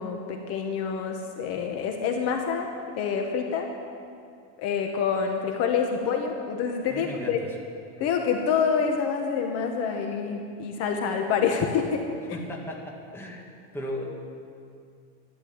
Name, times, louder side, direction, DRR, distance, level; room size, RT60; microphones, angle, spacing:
voice 1, 0.0-2.7 3.0-3.7 4.6-7.4 8.0-12.1, left 6 dB, 45° left, 3 dB, 1.4 m, -27 dB
voice 2, 6.9-7.6 12.3-13.5 13.7-14.0, equal, 5° left, -1 dB, 1.9 m, -36 dB
12.5 x 12.0 x 8.8 m, 2.4 s
cardioid pair, 165°, 34 cm